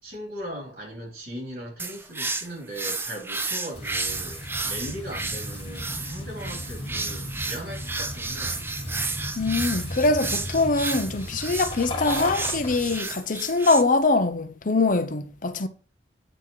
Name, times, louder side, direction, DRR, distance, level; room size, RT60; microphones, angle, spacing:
voice 1, 0.0-8.9, equal, 60° right, 3.5 m, -38 dB
sound 1, 1.8-13.8, right 3 dB, 10° right, 0.5 m, -32 dB
sound 2, 3.7-13.0, left 1 dB, 30° left, 1.9 m, -36 dB
voice 2, 9.4-15.7, left 3 dB, 45° left, 0.8 m, -23 dB
9.0 x 4.2 x 4.7 m
head